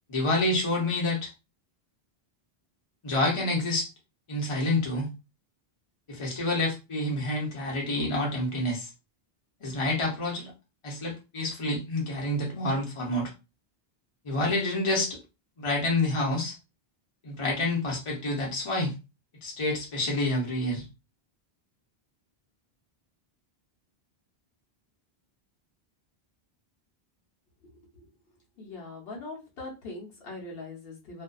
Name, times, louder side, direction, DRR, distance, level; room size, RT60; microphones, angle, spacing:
voice 1, 0.1-1.3 3.0-3.9 4.3-5.1 6.1-8.9 9.6-10.5 10.8-13.3 14.2-15.2 15.6-16.6 17.2-18.9 19.4-20.8, left 2 dB, 35° left, -2 dB, 0.8 m, -28 dB
voice 2, 28.6-31.2, left 2 dB, 70° left, -1 dB, 1.0 m, -41 dB
2.5 x 2.2 x 2.2 m, 0.27 s
omnidirectional pair, 1.1 m